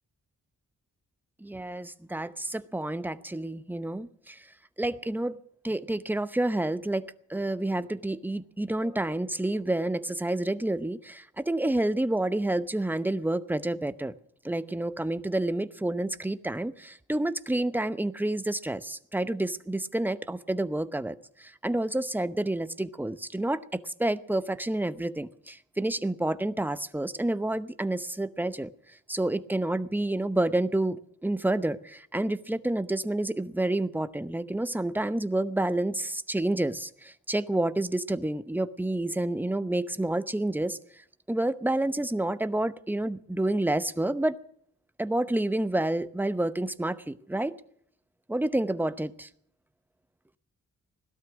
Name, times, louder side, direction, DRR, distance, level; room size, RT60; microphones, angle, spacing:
voice 1, 1.4-4.5 4.8-5.4 5.6-14.1 14.4-28.7 29.1-40.8 41.3-44.4 45.0-47.6 48.3-49.3, right 1 dB, 5° right, 12 dB, 0.8 m, -29 dB
17.5 x 12.5 x 6.2 m, 0.66 s
cardioid pair, 70°, 32 cm